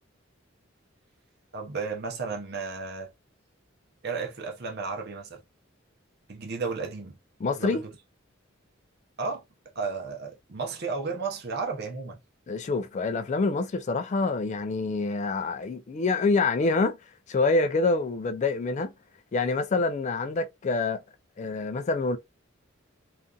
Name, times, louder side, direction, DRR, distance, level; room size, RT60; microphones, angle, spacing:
voice 1, 1.5-3.1 4.0-5.4 6.3-7.1 7.6-7.9 9.2-9.4 9.7-12.2, right 4 dB, 55° right, 0.7 m, -33 dB
voice 2, 7.4-7.8 12.5-17.0 17.3-18.9 19.3-21.0 21.4-22.2, left 3 dB, 35° left, 0.3 m, -26 dB
2.6 x 2.4 x 2.2 m
head